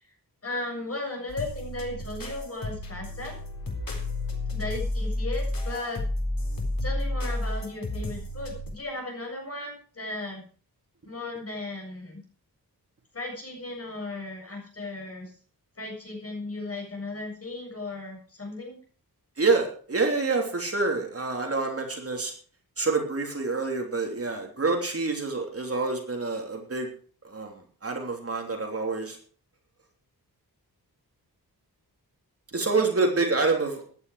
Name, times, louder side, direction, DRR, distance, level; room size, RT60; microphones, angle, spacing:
voice 1, 0.4-3.4 4.5-6.0 6.8-10.4 11.0-12.2 13.1-15.3 15.8-18.8, left 2 dB, 35° left, 0 dB, 7.3 m, -36 dB
sound 1, 1.3-8.7, left 1 dB, 60° left, 4.0 m, -31 dB
voice 2, 19.4-22.3 22.8-26.9 27.2-29.2 32.5-33.8, right 3 dB, 35° right, 2 dB, 3.2 m, -27 dB
15.0 x 11.5 x 4.9 m, 0.41 s
wide cardioid pair, 170°, 38 cm